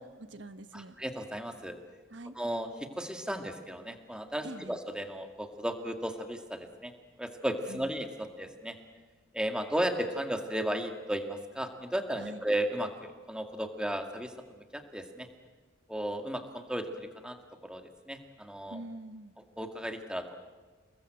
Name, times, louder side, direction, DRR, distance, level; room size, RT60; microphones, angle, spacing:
voice 1, 0.2-0.9 2.1-2.4 4.4-4.8 7.7-7.9 12.2-12.4 18.7-19.3, right 1 dB, 60° right, 11 dB, 1.4 m, -44 dB
voice 2, 0.7-1.7 2.4-2.7 3.0-6.9 7.2-8.8 9.3-15.3 15.9-17.4 17.6-18.8 19.6-20.3, right 1 dB, 5° right, 5 dB, 2.1 m, -35 dB
29.5 x 20.0 x 7.9 m, 1.4 s
head